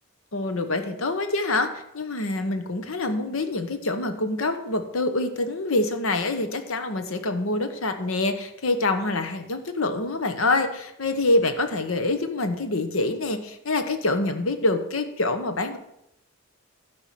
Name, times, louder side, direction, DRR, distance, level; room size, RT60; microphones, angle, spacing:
voice 1, 0.3-15.8, left 2 dB, 75° left, 8 dB, 1.1 m, -26 dB
12.5 x 4.9 x 7.4 m, 0.82 s
head